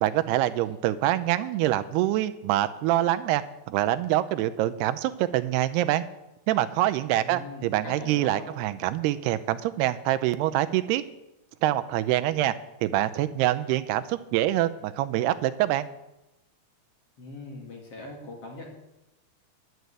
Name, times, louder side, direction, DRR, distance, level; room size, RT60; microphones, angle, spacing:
voice 1, 0.0-6.0 6.5-11.0 11.6-12.5 12.8-15.9, right 14 dB, 85° right, 11 dB, 2.7 m, -25 dB
voice 2, 7.2-8.5 17.2-18.7, left 2 dB, 45° left, -1 dB, 2.4 m, -41 dB
11.0 x 7.8 x 8.2 m, 0.93 s
omnidirectional pair, 4.6 m